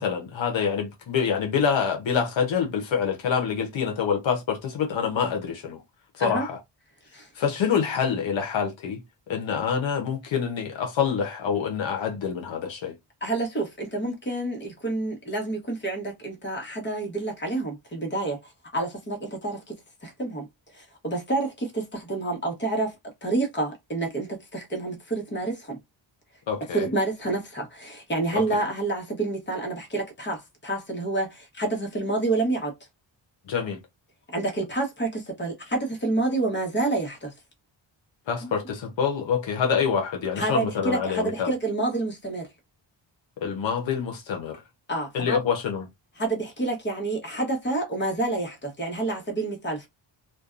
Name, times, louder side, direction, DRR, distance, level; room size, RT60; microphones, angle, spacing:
voice 1, 0.0-5.8 6.1-6.6 7.3-9.0 9.3-13.0 26.5-26.9 28.3-28.4 33.5-33.8 38.3-41.5 43.4-44.6 45.1-45.9, left 7 dB, 75° left, 0.7 m, -26 dB
voice 2, 13.2-19.8 20.0-20.5 20.7-22.9 23.2-25.8 26.7-32.7 34.3-37.3 38.4-38.5 40.4-42.5 44.9-45.4 46.2-49.9, right 2 dB, 25° left, 1.0 m, -28 dB
2.5 x 2.2 x 2.4 m
cardioid pair, 85°, 46 cm